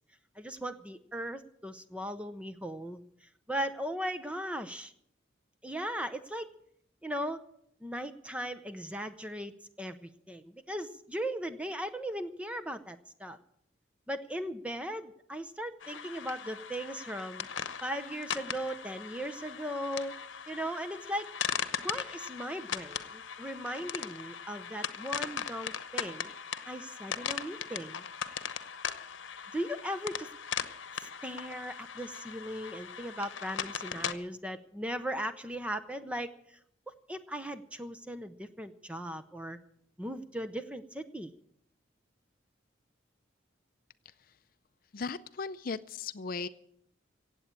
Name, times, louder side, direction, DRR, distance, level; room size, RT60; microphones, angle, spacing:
voice 1, 0.4-4.9 5.6-6.5 7.0-7.4 7.8-9.5 9.8-13.4 14.1-17.5 17.8-20.1 20.5-21.3 21.8-26.3 26.7-28.0 29.5-30.3 30.9-36.3 37.1-39.6 40.0-41.3, equal, 5° right, 9 dB, 0.7 m, -38 dB
sound 1, 15.8-34.1, left 7 dB, 90° left, 0.9 m, -39 dB
voice 2, 44.1-44.4 44.9-46.5, left 4 dB, 50° left, 13 dB, 0.5 m, -37 dB
16.5 x 8.3 x 8.6 m, 0.71 s
head